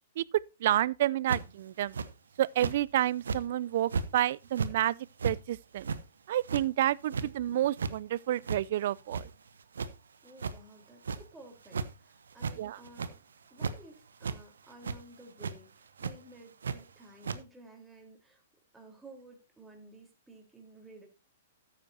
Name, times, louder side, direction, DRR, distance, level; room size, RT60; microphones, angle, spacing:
voice 1, 0.2-2.0 2.4-5.0 5.2-5.9 6.3-9.3 12.6-12.8, right 13 dB, 60° right, 0.4 m, -29 dB
sound 1, 1.3-1.6 1.9-2.1 2.6-2.8 3.2-3.4 3.9-4.1 4.4-4.7 5.2-5.4 5.8-6.0 6.4-6.6 7.1-7.3 7.6-7.9 8.4-8.6 9.0-9.5 9.8-9.9 10.4-10.5 11.0-11.2 11.7-11.9 12.3-12.6 12.8-13.2 13.6-13.7 14.2-14.4 14.8-15.0 15.4-15.5 16.0-16.1 16.6-16.8 17.2-17.4, right 5 dB, 80° right, 1.0 m, -33 dB
voice 2, 10.2-13.2 13.5-18.4 18.7-21.1, right 1 dB, 10° right, 3.9 m, -54 dB
13.5 x 9.3 x 2.7 m
hypercardioid pair, 120°, 0 cm